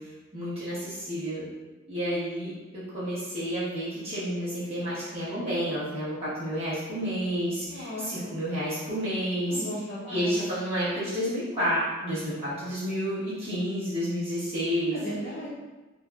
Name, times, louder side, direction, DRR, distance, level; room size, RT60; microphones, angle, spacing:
voice 1, 0.3-1.4 1.9-9.6 10.1-15.0, equal, 30° right, -13 dB, 1.2 m, -30 dB
voice 2, 7.7-8.4 9.5-10.5 14.9-15.5, equal, 40° left, -8 dB, 0.7 m, -36 dB
2.9 x 2.6 x 2.3 m, 1.2 s
head